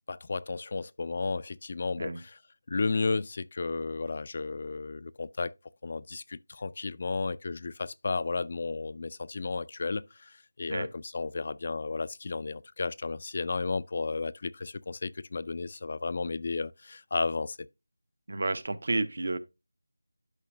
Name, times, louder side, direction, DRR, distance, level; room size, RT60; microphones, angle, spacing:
voice 1, 0.1-2.4 2.7-5.5 5.8-17.6, left 3 dB, 40° left, 0.3 m, -33 dB
voice 2, 18.3-19.4, right 2 dB, 55° right, 0.8 m, -31 dB
11.5 x 5.0 x 2.6 m
figure-of-eight pair, 170°, 0 cm